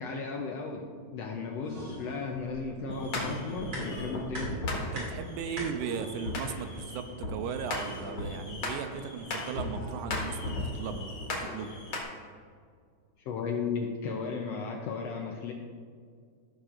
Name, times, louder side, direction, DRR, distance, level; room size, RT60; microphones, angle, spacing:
voice 1, 0.0-4.6 13.2-15.5, left 4 dB, 75° left, 1 dB, 1.6 m, -35 dB
sound 1, 1.6-2.7 3.8-4.8 5.7-6.7 7.8-8.7 9.7-10.6, equal, 70° right, 3.1 m, -46 dB
sound 2, 2.3-10.0, equal, 45° right, 3.3 m, -45 dB
sound 3, 2.9-12.0, left 2 dB, 55° left, 2.4 m, -37 dB
voice 2, 4.9-11.1 11.4-11.8, right 7 dB, 85° right, 8 dB, 2.0 m, -37 dB
14.5 x 6.4 x 2.5 m, 2.1 s
omnidirectional pair, 3.4 m